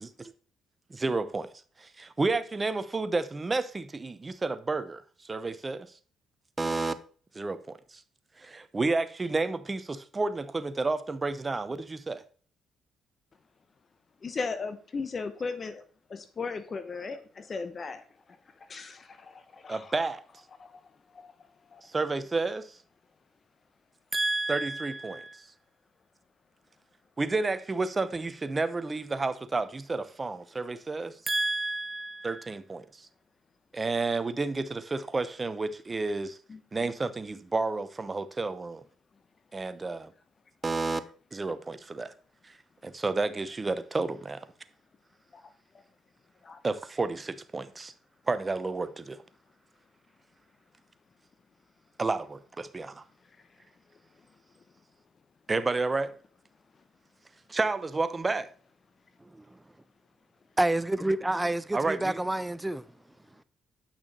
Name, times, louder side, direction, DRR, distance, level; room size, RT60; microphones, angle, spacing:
voice 1, 0.0-0.3 0.9-1.5 1.8-5.9 6.6-6.9 7.3-8.0 8.4-12.2 19.7-20.2 21.8-22.8 24.1-25.5 27.2-33.1 33.7-36.4 36.7-38.8 39.5-40.1 40.6-41.0 41.3-42.1 42.4-42.5 42.8-44.5 46.6-47.9 48.3-49.2 52.0-53.0 55.5-56.2 57.5-58.5 61.7-62.2, right 3 dB, 30° right, 0.8 m, -31 dB
voice 2, 14.2-15.8 16.1-18.0 18.7-19.9 20.6-20.7 21.1-21.3 21.7-21.8 36.5-36.6 45.3-45.4 46.4-46.6, left 4 dB, 45° left, 0.8 m, -36 dB
voice 3, 60.6-62.8, right 1 dB, 10° right, 0.4 m, -28 dB
8.6 x 6.0 x 4.1 m
supercardioid pair, 70°, 0 cm